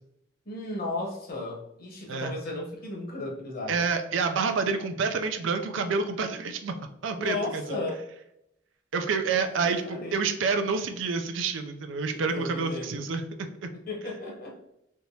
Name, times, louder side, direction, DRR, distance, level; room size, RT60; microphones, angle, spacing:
voice 1, 0.5-3.8 7.2-8.0 9.8-10.2 12.1-13.0 13.9-14.6, left 2 dB, 55° left, -1 dB, 0.9 m, -34 dB
voice 2, 3.7-6.7 7.0-7.6 8.9-13.2 13.6-13.7, right 4 dB, 80° right, 7 dB, 0.4 m, -28 dB
3.4 x 2.9 x 2.7 m, 0.79 s
head